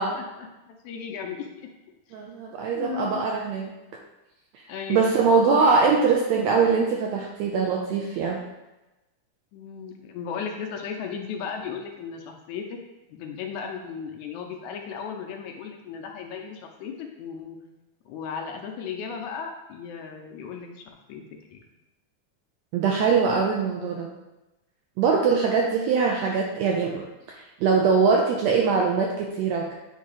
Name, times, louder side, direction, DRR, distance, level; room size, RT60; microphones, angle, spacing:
voice 1, 0.0-1.7 2.7-3.2 4.7-6.0 9.5-12.8 13.1-17.6 18.1-21.2 21.5-21.6, left 6 dB, 75° left, 2 dB, 1.9 m, -36 dB
voice 2, 2.1-3.7 4.5-4.6 4.9-8.4 22.7-24.1 25.0-29.7, right 5 dB, 85° right, 0 dB, 1.6 m, -22 dB
8.1 x 2.8 x 4.8 m, 1.0 s
omnidirectional pair, 3.7 m